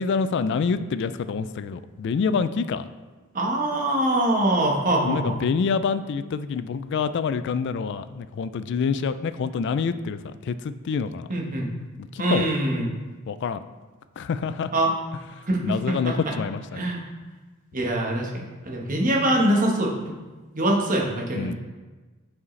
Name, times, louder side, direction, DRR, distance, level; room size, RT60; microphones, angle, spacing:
voice 1, 0.0-2.8 5.0-11.3 12.3-12.5 13.3-13.6 14.2-14.7 15.6-16.9 21.3-21.6, left 5 dB, 55° left, 13 dB, 0.3 m, -26 dB
voice 2, 3.3-5.4 11.3-11.7 12.2-12.9 14.7-14.9 15.5-16.3 16.7-17.0 17.7-18.3 18.6-20.1 20.5-21.6, right 1 dB, 35° right, -1 dB, 1.2 m, -23 dB
8.1 x 4.9 x 3.2 m, 1.3 s
head